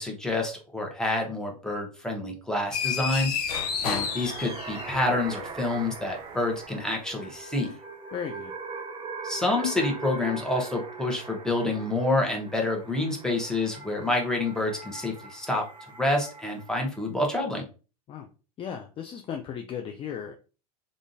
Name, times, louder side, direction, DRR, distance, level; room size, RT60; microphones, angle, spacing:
voice 1, 0.0-3.4 3.8-7.7 9.2-15.6 16.0-17.7, left 2 dB, 5° left, 1 dB, 1.0 m, -28 dB
sound 1, 2.7-5.2, left 7 dB, 70° left, 0.7 m, -30 dB
sound 2, 3.6-17.0, right 4 dB, 25° right, 0.6 m, -41 dB
voice 2, 8.1-8.5 18.1-18.3 18.6-20.3, left 8 dB, 25° left, 5 dB, 0.4 m, -35 dB
3.6 x 2.4 x 2.6 m, 0.34 s
hypercardioid pair, 90°, 20 cm